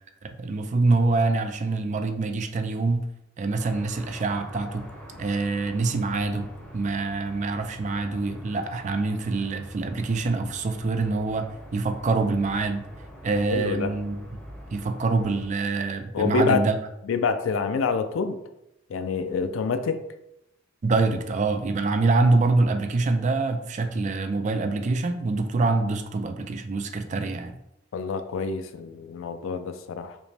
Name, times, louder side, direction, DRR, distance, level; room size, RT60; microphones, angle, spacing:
voice 1, 0.2-3.1 3.4-4.8 5.2-12.8 13.2-14.2 14.7-16.8 20.8-27.6, right 3 dB, 40° right, 7 dB, 0.4 m, -25 dB
sound 1, 3.5-15.5, equal, 10° left, 1.0 m, -45 dB
voice 2, 13.5-14.0 16.1-16.7 17.1-18.4 18.9-20.0 27.9-30.2, left 5 dB, 80° left, 9 dB, 0.4 m, -26 dB
5.0 x 2.1 x 3.2 m, 0.84 s
head